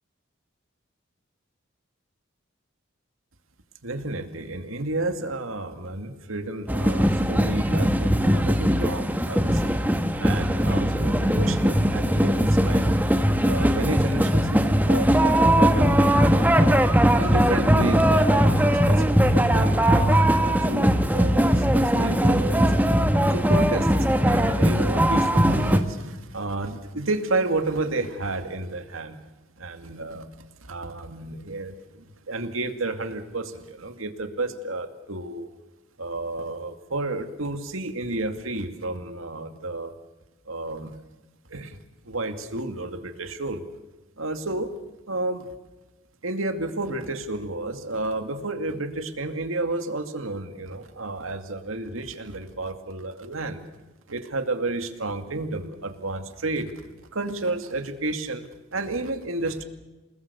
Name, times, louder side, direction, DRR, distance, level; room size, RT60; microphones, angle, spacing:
voice 1, 3.8-9.7 10.2-13.0 13.4-16.9 17.2-22.6 23.3-23.9 24.2-29.2 29.6-30.3 30.6-35.5 36.0-39.9 40.5-40.9 41.5-41.8 42.0-43.6 44.2-44.7 45.1-45.5 46.2-53.7 54.1-56.7 57.1-59.6, right 2 dB, 85° right, 7 dB, 2.4 m, -31 dB
sound 1, 6.7-25.8, equal, 10° right, 1.3 m, -20 dB
28.5 x 19.5 x 7.0 m, 1.1 s
head